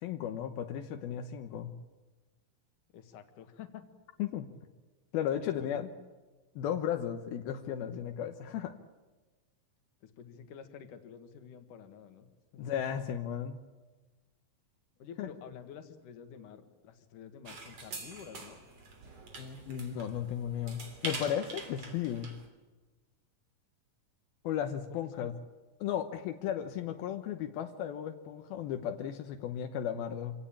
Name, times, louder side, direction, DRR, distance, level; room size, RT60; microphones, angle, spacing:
voice 1, 0.0-1.7 4.2-4.5 5.1-5.9 6.6-8.7 12.6-13.6 15.2-15.3 19.4-22.3 24.4-25.3 25.8-30.3, left 9 dB, 80° left, 6 dB, 2.9 m, -35 dB
voice 2, 2.9-3.8 5.4-5.9 10.0-12.3 12.5-12.6 15.0-18.6 24.9-25.3, left 8 dB, 60° left, 7 dB, 3.2 m, -49 dB
sound 1, 17.5-22.5, right 3 dB, 45° right, 4.0 m, -44 dB
27.0 x 17.5 x 8.8 m, 1.3 s
omnidirectional pair, 4.3 m